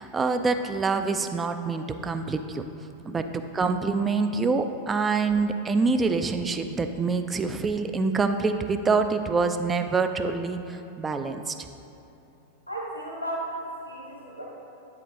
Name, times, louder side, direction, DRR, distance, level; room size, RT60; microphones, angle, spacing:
voice 1, 0.0-2.6 3.1-3.2 3.5-11.6, right 4 dB, 15° right, 8 dB, 0.4 m, -26 dB
voice 2, 12.7-14.4, right 1 dB, 90° left, -3 dB, 1.4 m, -34 dB
8.9 x 4.4 x 3.8 m, 3.0 s
figure-of-eight pair, 90°, 0 cm